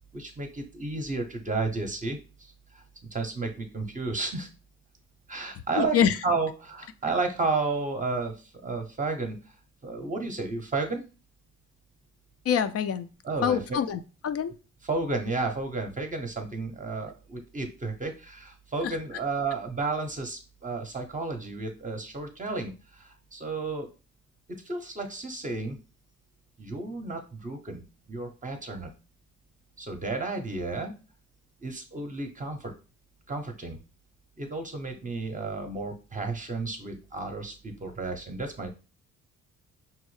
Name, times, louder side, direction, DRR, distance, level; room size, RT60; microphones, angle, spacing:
voice 1, 0.1-2.8 3.1-4.5 5.3-6.0 6.2-9.4 9.8-11.0 13.2-13.8 14.8-23.9 24.6-25.8 26.6-27.8 28.1-28.9 29.8-30.9 31.6-32.7 33.3-33.8 34.4-38.7, right 3 dB, 25° right, 4 dB, 0.6 m, -32 dB
voice 2, 5.8-6.2 12.5-13.1 13.4-14.5 18.8-19.0, left 8 dB, 55° left, 11 dB, 0.4 m, -25 dB
5.5 x 2.0 x 3.1 m, 0.33 s
cardioid pair, 90°, 30 cm